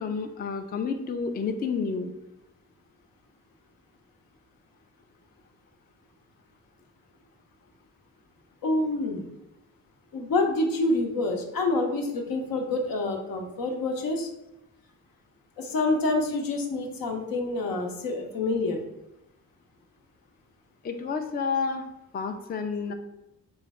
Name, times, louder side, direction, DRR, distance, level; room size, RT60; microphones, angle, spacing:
voice 1, 0.0-2.1 20.8-21.8 22.1-22.9, left 5 dB, 25° left, 6 dB, 0.4 m, -30 dB
voice 2, 8.6-9.2 10.1-14.3 15.6-18.8, left 2 dB, 70° left, 2 dB, 0.8 m, -27 dB
3.2 x 2.3 x 4.1 m, 0.89 s
supercardioid pair, 50°, 35 cm